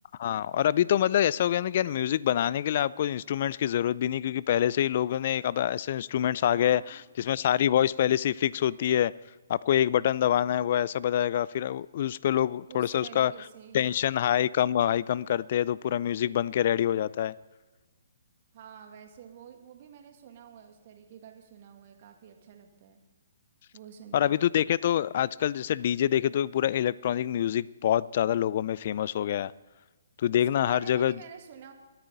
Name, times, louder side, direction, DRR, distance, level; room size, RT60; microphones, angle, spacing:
voice 1, 0.2-9.1 9.5-13.3 13.7-17.3 24.1-29.5 30.2-31.1, left 11 dB, 50° left, 0.4 m, -26 dB
voice 2, 6.6-7.0 12.7-14.1 18.5-23.0 23.7-24.4 30.3-31.7, right 8 dB, 45° right, 1.9 m, -49 dB
24.0 x 9.0 x 4.0 m
figure-of-eight pair, 135°, 0 cm